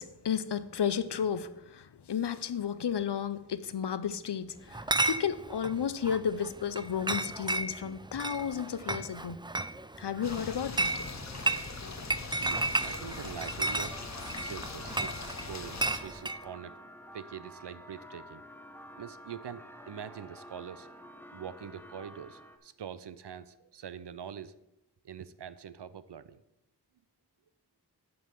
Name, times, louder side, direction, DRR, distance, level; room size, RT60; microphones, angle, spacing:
voice 1, 0.0-9.4 10.0-11.0 11.8-12.0, left 8 dB, 90° left, 0.5 m, -33 dB
Chatter / Chink clink, 4.7-16.4, right 2 dB, 15° right, 0.3 m, -34 dB
sound 1, 10.2-16.0, left 4 dB, 45° left, 0.7 m, -42 dB
voice 2, 12.4-14.0 14.4-16.8 17.1-18.4 19.0-20.9 21.3-24.5 25.0-26.4, right 8 dB, 85° right, 0.5 m, -44 dB
sound 2, 12.8-22.6, equal, 5° left, 0.7 m, -50 dB
7.8 x 5.4 x 5.7 m
wide cardioid pair, 45°, 40 cm